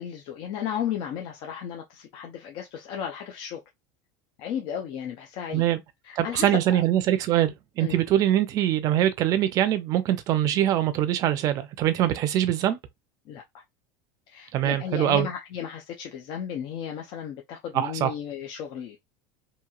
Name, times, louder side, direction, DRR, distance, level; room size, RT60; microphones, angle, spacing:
voice 1, 0.0-3.6 4.4-5.6 6.0-6.8 7.8-8.0 13.3-13.4 14.3-19.0, left 9 dB, 50° left, 0.5 m, -34 dB
voice 2, 5.5-5.8 6.2-12.8 14.5-15.3 17.7-18.1, right 12 dB, 40° right, 0.5 m, -23 dB
2.9 x 2.7 x 2.3 m
cardioid pair, 155°, 9 cm